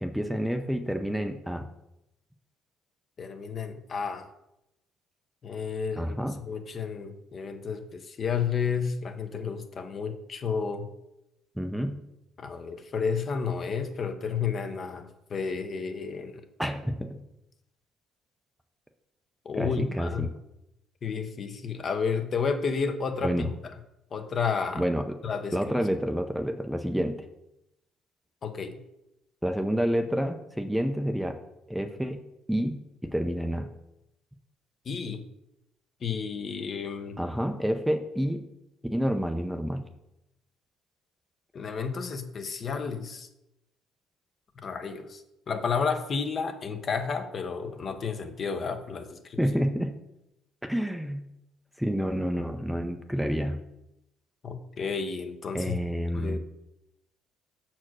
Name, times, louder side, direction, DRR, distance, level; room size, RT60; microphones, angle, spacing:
voice 1, 0.0-1.7 6.0-6.4 11.6-12.0 16.6-17.2 19.6-20.3 23.2-23.5 24.7-25.2 25.5-27.2 29.4-31.4 31.7-32.2 32.5-33.7 37.2-38.4 38.9-39.8 49.4-50.0 50.7-51.2 51.8-53.6 55.5-56.4, equal, ahead, 6 dB, 0.6 m, -29 dB
voice 2, 3.2-4.3 5.4-6.2 6.5-10.9 12.4-16.4 19.4-20.3 21.0-23.5 24.1-24.8 25.2-25.6 28.4-28.8 34.9-35.2 36.0-37.2 41.5-43.3 44.6-49.4 54.4-55.7 56.1-56.4, left 5 dB, 45° left, 7 dB, 0.8 m, -31 dB
6.1 x 4.5 x 6.2 m, 0.86 s
cardioid pair, 105°, 0 cm